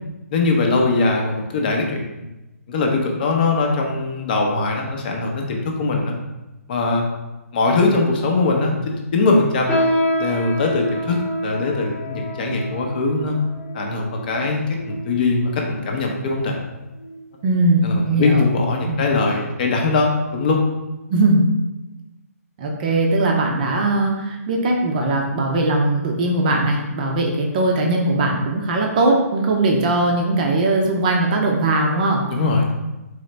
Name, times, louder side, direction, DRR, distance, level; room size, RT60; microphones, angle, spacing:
voice 1, 0.3-2.2 2.7-6.2 6.7-7.0 7.5-9.7 10.2-13.4 13.7-16.6 17.8-20.6 32.3-32.6, left 3 dB, 35° left, 1 dB, 0.6 m, -21 dB
sound 1, 9.7-15.4 16.0-16.2 16.9-17.2 17.6-17.8 18.5-18.6, equal, 15° left, 0.9 m, -27 dB
voice 2, 17.4-18.5 18.9-19.0 21.1-21.5 22.6-32.2, right 2 dB, 30° right, 1 dB, 0.6 m, -19 dB
3.9 x 3.0 x 3.2 m, 1.0 s
hypercardioid pair, 155°, 8 cm